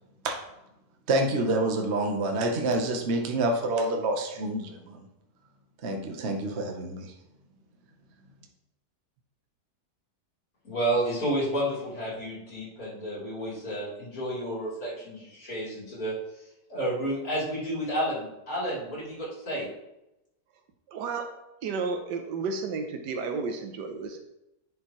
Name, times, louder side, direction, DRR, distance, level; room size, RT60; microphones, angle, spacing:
voice 1, 1.1-5.0 5.8-7.1, right 2 dB, 45° right, 2 dB, 1.1 m, -27 dB
voice 2, 10.6-16.2 16.7-19.7, right 1 dB, 55° left, -7 dB, 3.8 m, -31 dB
voice 3, 20.9-21.3 21.6-24.2, right 4 dB, 90° right, 5 dB, 1.4 m, -32 dB
10.0 x 5.4 x 3.1 m, 0.90 s
omnidirectional pair, 1.8 m